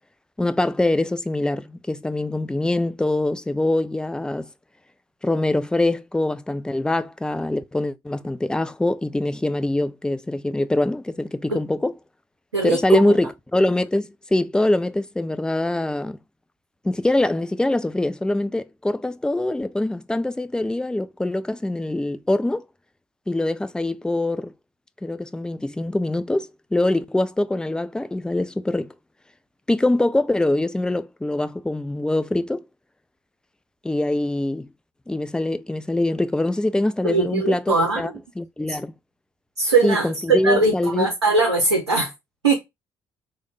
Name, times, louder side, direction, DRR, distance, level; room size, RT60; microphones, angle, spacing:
voice 1, 0.4-4.5 5.2-12.0 12.6-16.2 16.8-22.6 23.3-24.5 25.0-28.9 29.7-32.6 33.8-34.7 35.1-38.1 38.4-38.9 39.8-41.1, left 1 dB, 5° left, 0.3 m, -23 dB
voice 2, 12.5-13.1 37.0-38.1 38.7-38.8 39.6-42.1 42.4-42.6, right 3 dB, 85° right, 0.6 m, -21 dB
3.2 x 2.1 x 3.8 m
figure-of-eight pair, 45°, 14 cm